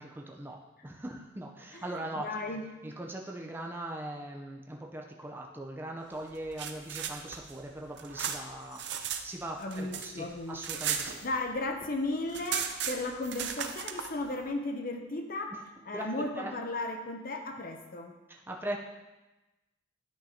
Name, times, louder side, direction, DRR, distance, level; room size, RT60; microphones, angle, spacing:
voice 1, 0.0-2.3 2.8-8.8 9.2-11.2 15.9-16.1 16.4-16.5 18.3-18.8, right 1 dB, 10° right, 0 dB, 0.5 m, -40 dB
voice 2, 2.2-2.7 9.6-10.8 11.2-15.5 15.9-18.2, left 2 dB, 45° left, 5 dB, 0.6 m, -35 dB
sound 1, 6.3-9.2 9.5-11.7 12.0-12.1 12.3-14.1, right 8 dB, 60° right, 0.6 m, -36 dB
10.5 x 6.1 x 2.8 m, 1.1 s
head